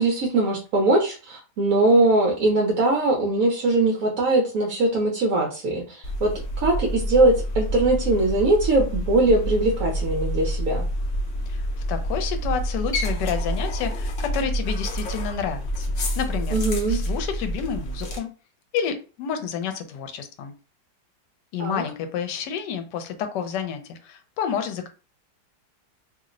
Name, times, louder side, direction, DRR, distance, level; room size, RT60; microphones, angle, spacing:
voice 1, 0.0-10.8 16.5-17.0 21.6-21.8, right 2 dB, 65° right, -1 dB, 1.0 m, -21 dB
sound 1, 6.0-18.2, equal, 55° left, 0.9 m, -28 dB
voice 2, 11.5-15.9 16.2-16.6 16.9-18.3 18.7-20.5 21.5-24.9, left 7 dB, 80° left, 8 dB, 1.2 m, -29 dB
2.9 x 2.0 x 3.7 m, 0.35 s
omnidirectional pair, 1.8 m